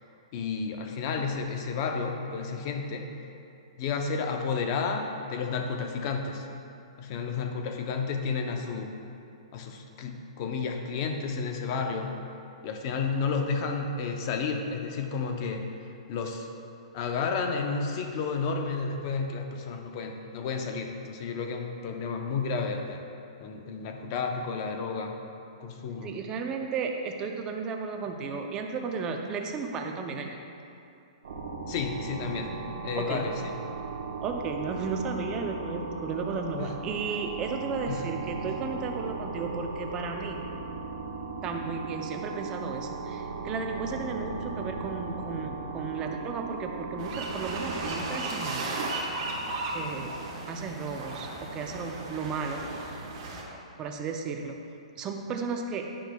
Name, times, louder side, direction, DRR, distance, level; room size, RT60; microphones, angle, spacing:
voice 1, 0.3-3.1 3.8-6.5 7.0-8.9 9.5-12.2 12.6-15.7 16.1-16.5 16.9-23.0 23.4-25.2 25.6-26.1 31.7-33.5 36.6-36.7 37.9-38.0 38.4-38.5, left 5 dB, 40° left, 4 dB, 0.6 m, -31 dB
voice 2, 26.0-30.4 33.0-33.2 34.2-40.4 41.4-49.1 49.7-50.1 50.5-53.1 53.8-54.6 55.0-55.9, right 4 dB, 20° right, 3 dB, 0.5 m, -34 dB
sound 1, 31.2-47.9, right 4 dB, 65° right, 1.0 m, -37 dB
sound 2, 47.0-53.4, right 2 dB, 40° right, 1.1 m, -35 dB
9.7 x 6.2 x 2.3 m, 2.6 s
hypercardioid pair, 155°, 3 cm